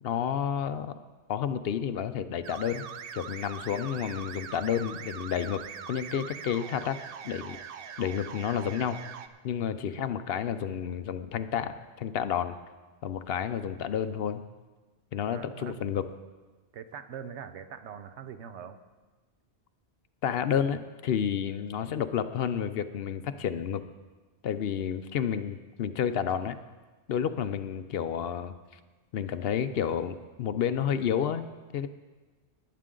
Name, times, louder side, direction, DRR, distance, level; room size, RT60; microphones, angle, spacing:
voice 1, 0.0-0.9 1.3-2.9 3.1-7.0 7.2-7.6 8.0-9.0 9.4-12.6 13.0-14.4 15.1-16.1 20.2-23.8 24.4-26.6 27.1-28.6 29.1-31.5 31.7-31.9, left 8 dB, 65° left, 11 dB, 0.8 m, -30 dB
sound 1, 2.4-9.3, right 7 dB, 60° right, 0.7 m, -42 dB
voice 2, 9.8-10.2 15.3-15.9 16.7-18.8, right 8 dB, 90° right, 10 dB, 1.0 m, -43 dB
19.5 x 8.5 x 3.8 m, 1.3 s
omnidirectional pair, 1.1 m